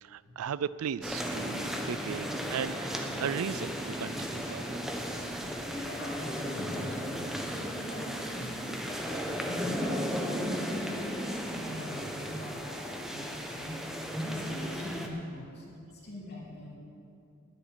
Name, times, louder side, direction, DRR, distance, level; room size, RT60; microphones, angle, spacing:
voice 1, 0.0-4.8, right 8 dB, 90° right, 18 dB, 0.4 m, -36 dB
sound 1, 1.0-15.1, equal, ahead, 1.0 m, -35 dB
voice 2, 5.8-9.0 9.4-11.0 11.5-13.7 14.2-16.7, left 1 dB, 50° left, -5 dB, 3.2 m, -42 dB
9.9 x 8.0 x 9.8 m, 2.6 s
head